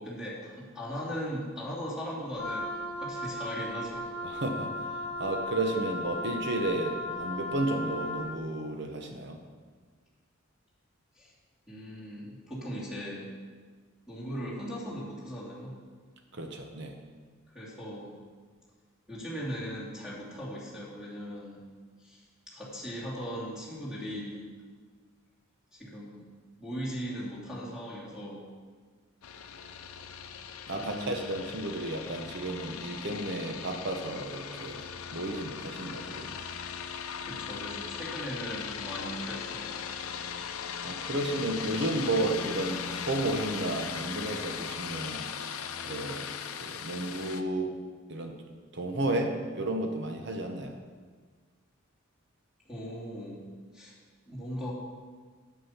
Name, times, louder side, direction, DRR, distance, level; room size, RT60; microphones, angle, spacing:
voice 1, 0.0-2.7 3.0-4.1 11.2-11.3 11.7-13.3 14.1-15.8 17.5-18.1 19.1-21.6 22.0-24.4 25.7-26.3 26.6-28.5 30.8-31.4 37.2-39.8 52.6-53.4 53.7-53.9 54.3-54.7, equal, 5° right, -8 dB, 2.6 m, -38 dB
Wind instrument woodwind instrument, 2.3-8.3, left 1 dB, 30° left, 2.2 m, -36 dB
voice 2, 4.2-9.4 16.3-16.9 30.7-36.4 40.8-45.3 45.9-46.3 46.6-47.8 48.1-48.4 48.7-50.8, right 2 dB, 55° right, 4 dB, 0.9 m, -32 dB
sound 1, 29.2-47.4, left 7 dB, 85° left, 0.6 m, -38 dB
8.4 x 7.5 x 5.8 m, 1.5 s
head